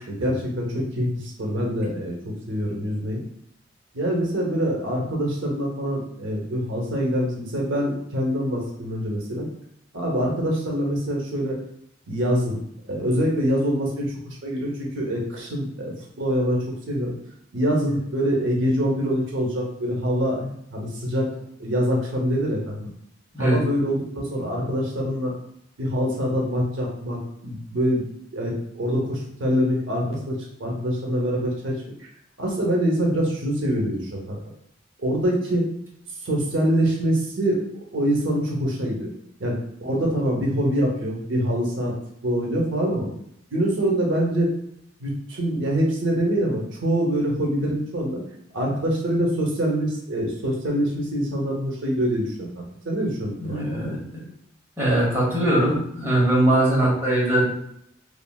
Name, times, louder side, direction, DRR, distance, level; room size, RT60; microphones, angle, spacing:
voice 1, 0.0-3.2 3.9-9.5 9.9-11.6 12.1-17.1 17.5-21.3 21.6-22.9 23.4-25.3 25.8-28.0 28.3-32.1 32.4-34.4 35.0-35.6 36.2-39.1 39.4-41.9 42.2-43.1 43.5-44.5 45.0-48.2 48.5-53.9, equal, 70° right, -2 dB, 0.7 m, -25 dB
voice 2, 53.4-54.0 54.8-57.5, right 1 dB, 15° right, -6 dB, 0.9 m, -21 dB
3.1 x 2.4 x 2.2 m, 0.72 s
head